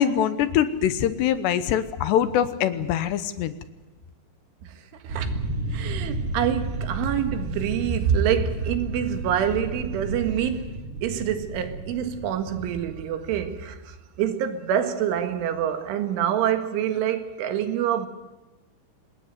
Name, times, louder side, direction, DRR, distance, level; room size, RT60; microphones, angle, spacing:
voice 1, 0.0-3.6, left 10 dB, 75° left, 3.0 m, -23 dB
voice 2, 4.9-5.4 5.7-18.1, right 9 dB, 85° right, 4.3 m, -26 dB
sound 1, 5.1-12.9, right 1 dB, 40° right, 8.6 m, -33 dB
26.0 x 20.0 x 8.0 m
omnidirectional pair, 5.4 m